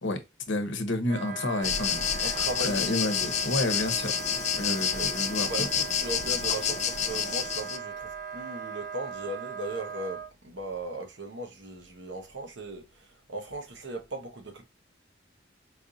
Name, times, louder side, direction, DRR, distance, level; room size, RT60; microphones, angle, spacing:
voice 1, 0.0-4.1 4.6-5.7, left 2 dB, 70° left, 0.9 m, -30 dB
Wind instrument woodwind instrument, 1.0-10.3, right 7 dB, 45° right, 0.4 m, -39 dB
sound 1, 1.6-7.8, left 8 dB, 35° left, 0.4 m, -29 dB
voice 2, 2.2-3.1 4.9-5.1 5.5-14.6, right 2 dB, 70° right, 1.0 m, -38 dB
4.6 x 2.5 x 2.7 m
head